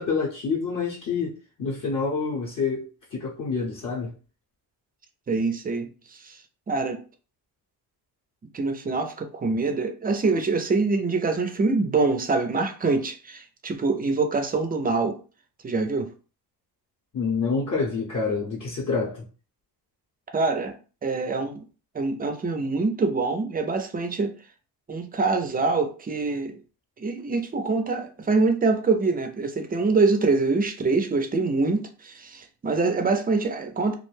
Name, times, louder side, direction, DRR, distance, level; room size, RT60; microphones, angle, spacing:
voice 1, 0.0-4.1 17.1-19.3, left 4 dB, 40° left, 0.7 m, -27 dB
voice 2, 5.3-6.4 6.7-7.0 8.5-15.2 15.6-16.1 20.3-20.8 21.0-21.6 21.9-24.3 24.9-26.6 27.0-33.9, right 3 dB, 20° right, 0.4 m, -25 dB
2.4 x 2.1 x 3.1 m
cardioid pair, 105°, 45 cm